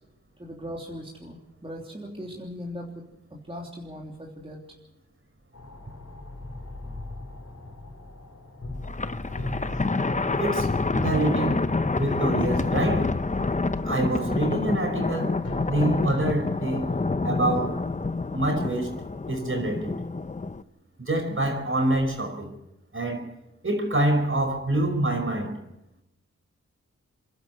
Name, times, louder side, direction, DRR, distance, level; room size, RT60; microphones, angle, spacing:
voice 1, 0.4-3.1 3.5-4.6, equal, 20° right, 3.3 m, -38 dB
sound 1, 5.5-17.2, left 2 dB, 55° left, 5.5 m, -39 dB
Thunder, 8.8-20.6, left 3 dB, 25° left, 0.8 m, -27 dB
voice 2, 10.4-11.6 12.0-13.1 13.8-15.4 15.7-16.9 17.2-17.8 18.3-19.0 19.3-20.0 21.0-22.5 22.9-23.3 23.6-25.5, right 1 dB, 45° right, 5.3 m, -26 dB
27.0 x 12.0 x 8.2 m
wide cardioid pair, 65°, 29 cm